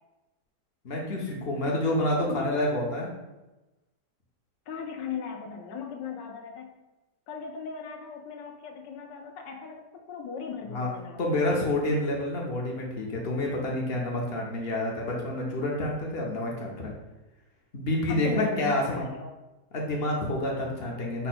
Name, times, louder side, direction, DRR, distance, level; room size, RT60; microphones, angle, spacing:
voice 1, 0.8-3.1 10.7-10.9 11.2-16.9 17.7-19.0 19.7-21.3, left 1 dB, 55° left, -2 dB, 0.6 m, -28 dB
voice 2, 2.2-2.5 4.7-6.7 7.3-11.6 18.1-19.3, left 5 dB, 85° left, 2 dB, 1.2 m, -37 dB
5.4 x 2.2 x 4.1 m, 1.1 s
omnidirectional pair, 1.9 m